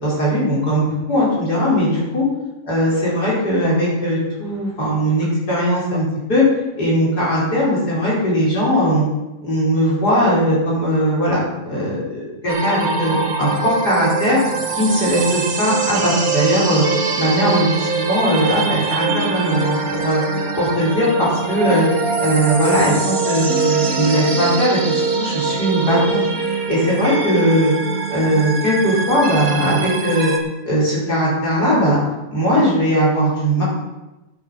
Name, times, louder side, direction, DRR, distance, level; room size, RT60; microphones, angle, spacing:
voice 1, 0.0-2.2 2.7-6.5 6.8-9.1 9.4-14.4 14.8-16.8 17.2-20.2 20.6-21.9 22.2-26.2 26.7-27.7 28.1-30.3 30.6-32.0 32.3-33.6, equal, 25° left, -6 dB, 5.3 m, -19 dB
sound 1, 12.5-30.4, right 4 dB, 60° right, 0.9 m, -23 dB
10.5 x 8.8 x 6.6 m, 1.0 s
omnidirectional pair, 3.8 m